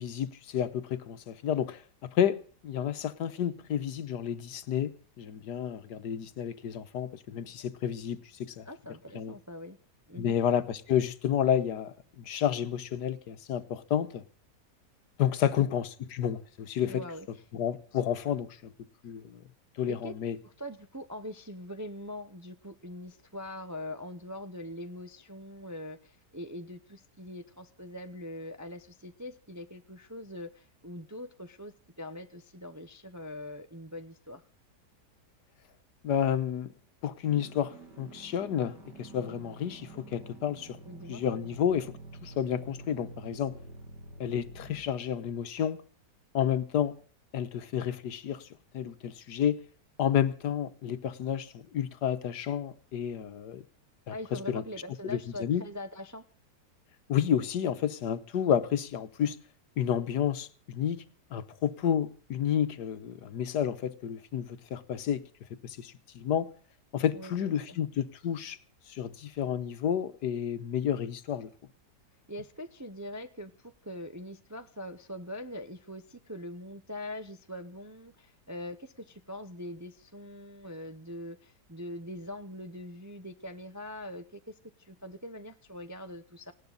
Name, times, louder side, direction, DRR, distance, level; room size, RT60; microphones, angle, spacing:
voice 1, 0.0-1.8 2.1-8.7 9.1-9.3 10.2-14.2 15.2-17.0 17.5-18.7 19.0-19.4 19.8-20.4 36.0-36.7 37.0-40.8 41.1-41.9 42.2-43.5 44.2-45.8 46.3-47.0 47.3-48.5 48.7-49.6 50.0-53.6 54.1-54.6 55.0-55.6 57.1-59.4 59.8-61.0 61.3-65.2 65.6-66.5 66.9-68.6 68.9-71.5, left 9 dB, 80° left, 1.6 m, -30 dB
voice 2, 8.6-9.8 10.1-10.4 15.4-15.7 16.8-17.3 19.9-20.1 20.4-34.4 40.8-41.2 54.1-56.2 67.1-67.8 72.3-86.5, left 1 dB, 20° right, 0.4 m, -42 dB
sound 1, 37.3-44.8, right 3 dB, 90° right, 3.0 m, -48 dB
19.0 x 17.0 x 4.0 m
omnidirectional pair, 1.8 m